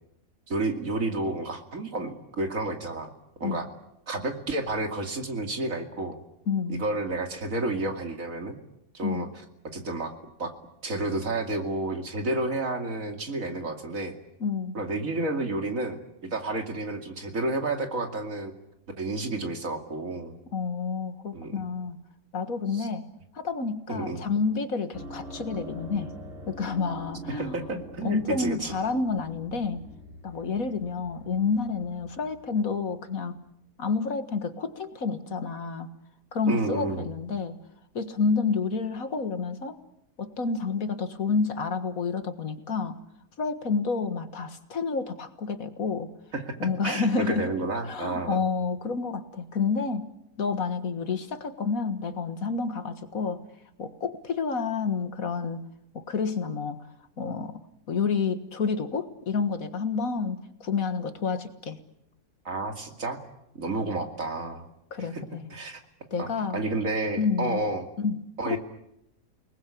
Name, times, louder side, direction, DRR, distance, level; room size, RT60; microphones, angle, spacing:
voice 1, 0.5-3.1 3.4-3.7 4.1-6.2 6.7-8.6 8.9-9.3 9.7-10.1 10.4-10.5 10.8-14.2 14.7-18.5 19.0-20.4 21.3-21.6 22.7-22.9 23.9-24.3 27.3-28.7 36.5-37.1 46.3-46.6 46.8-48.4 62.4-63.2 63.5-64.7 65.0-65.8 66.2-67.9 68.4-68.6, right 2 dB, 55° right, 5 dB, 2.9 m, -31 dB
voice 2, 6.5-6.8 9.0-9.3 14.4-14.8 20.5-22.0 22.3-23.1 23.3-26.1 26.5-27.6 28.0-29.8 30.2-33.4 33.8-35.9 36.3-37.6 38.0-39.8 40.2-43.0 43.4-46.1 46.6-47.5 47.9-50.1 50.4-53.4 53.8-55.6 55.9-56.8 57.2-61.8 64.9-65.5 66.1-66.6 67.2-67.6 68.0-68.6, left 5 dB, 55° left, 9 dB, 2.0 m, -29 dB
sound 1, 24.9-33.3, equal, 35° right, 4.5 m, -44 dB
28.5 x 20.0 x 8.5 m, 0.82 s
omnidirectional pair, 1.7 m